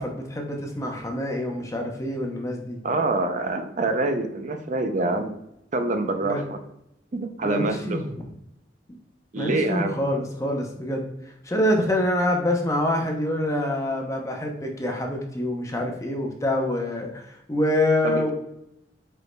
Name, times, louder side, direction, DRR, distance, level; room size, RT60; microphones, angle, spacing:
voice 1, 0.0-2.8 6.2-6.4 7.4-8.3 9.4-11.0 11.4-18.3, left 1 dB, 20° left, 1 dB, 0.7 m, -26 dB
voice 2, 2.8-5.3 5.7-6.6 7.1-8.0 9.3-10.0 18.0-18.2, right 2 dB, 45° right, 7 dB, 0.5 m, -26 dB
5.0 x 4.6 x 2.2 m, 0.82 s
head